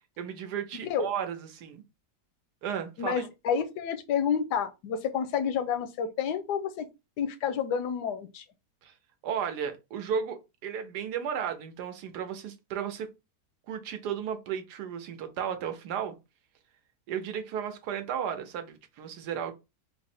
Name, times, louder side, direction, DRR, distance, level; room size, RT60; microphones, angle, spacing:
voice 1, 0.2-1.8 2.6-3.2 8.8-8.9 9.2-13.1 13.7-16.1 17.1-19.5, right 8 dB, 85° right, 1.3 m, -34 dB
voice 2, 3.0-6.9 7.2-8.4, left 7 dB, 85° left, 1.2 m, -29 dB
3.9 x 2.0 x 4.2 m
omnidirectional pair, 1.8 m